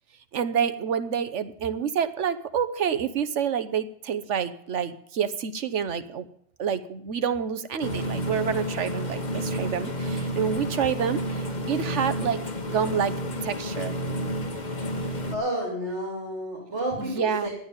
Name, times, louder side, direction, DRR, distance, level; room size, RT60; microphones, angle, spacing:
voice 1, 0.3-6.3 6.6-12.4 12.7-13.1 13.4-14.0 17.0-17.5, right 7 dB, 90° right, 12 dB, 1.3 m, -28 dB
sound 1, 7.8-15.3, equal, 40° left, 1.6 m, -30 dB
voice 2, 15.3-17.5, right 1 dB, 75° right, -1 dB, 3.7 m, -30 dB
11.5 x 8.9 x 8.7 m, 0.71 s
omnidirectional pair, 1.2 m